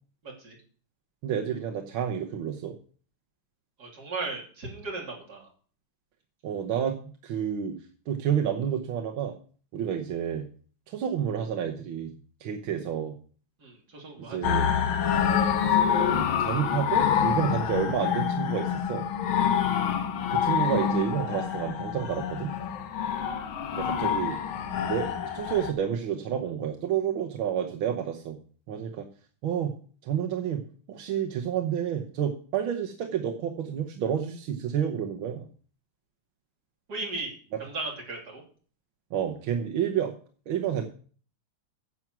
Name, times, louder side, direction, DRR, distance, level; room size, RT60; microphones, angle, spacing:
voice 1, 0.2-0.6 3.8-5.5 13.6-14.6 36.9-37.3 37.6-38.4, right 3 dB, 50° right, -1 dB, 3.6 m, -36 dB
voice 2, 1.2-2.8 6.4-7.8 8.1-9.4 9.7-10.4 10.9-12.1 12.4-13.1 14.2-14.7 15.6-19.0 20.3-22.5 23.7-24.4 24.9-28.4 28.7-29.1 29.4-29.7 30.0-35.5 39.1-40.1 40.5-40.9, right 9 dB, 85° right, 3 dB, 1.8 m, -30 dB
sound 1, 14.4-25.7, left 8 dB, 85° left, 1.9 m, -27 dB
10.5 x 7.3 x 6.1 m, 0.43 s
omnidirectional pair, 2.2 m